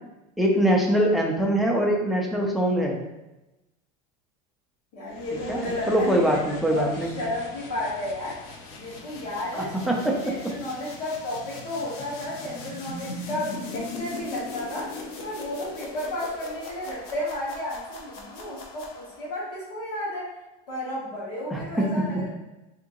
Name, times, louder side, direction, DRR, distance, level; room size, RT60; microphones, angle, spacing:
voice 1, 0.4-3.0 5.5-7.1 9.5-10.2 21.5-21.9, right 1 dB, ahead, -1 dB, 0.4 m, -23 dB
voice 2, 4.9-6.2 6.6-8.4 8.8-14.9 15.2-20.3 20.7-22.3, left 1 dB, 80° left, -10 dB, 1.3 m, -32 dB
sound 1, 5.1-19.4, left 3 dB, 55° left, 0.7 m, -40 dB
2.8 x 2.6 x 3.7 m, 0.98 s
supercardioid pair, 155°, 19 cm